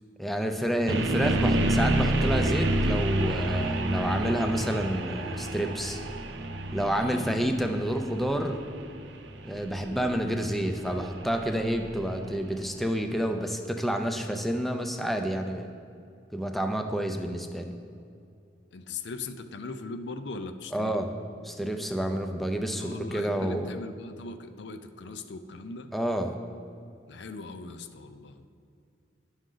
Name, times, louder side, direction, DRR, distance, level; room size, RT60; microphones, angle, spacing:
voice 1, 0.2-6.0 6.7-8.6 9.4-15.7 16.3-17.7 20.7-21.1 21.4-23.7 25.9-26.4, equal, ahead, 4 dB, 0.4 m, -29 dB
sound 1, 0.9-12.8, right 1 dB, 70° right, 0.6 m, -29 dB
voice 2, 6.9-7.3 18.7-20.9 22.7-25.9 27.1-28.4, left 3 dB, 65° left, 9 dB, 0.5 m, -40 dB
10.0 x 6.3 x 3.8 m, 2.4 s
head